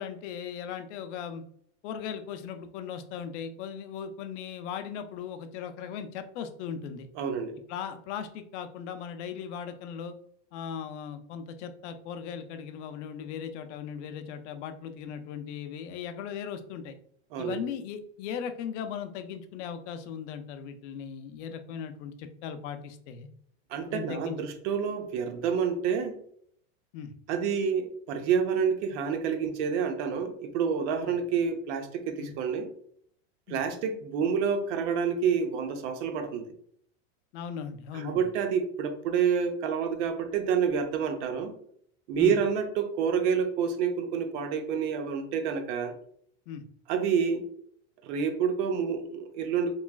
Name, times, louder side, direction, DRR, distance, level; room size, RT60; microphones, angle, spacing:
voice 1, 0.0-1.4 1.8-7.1 7.7-10.1 10.5-17.0 17.4-23.3 23.9-24.4 26.9-27.1 32.2-32.3 33.5-33.6 37.3-38.2 42.2-42.4 46.5-46.6, left 7 dB, 65° left, 8 dB, 0.5 m, -38 dB
voice 2, 7.2-7.6 17.3-17.6 23.7-26.2 27.3-32.7 33.5-36.5 37.9-41.5 42.1-45.9 46.9-47.5 48.0-49.7, right 6 dB, 65° right, 7 dB, 0.6 m, -28 dB
3.1 x 2.2 x 2.2 m, 0.64 s
supercardioid pair, 145°, 37 cm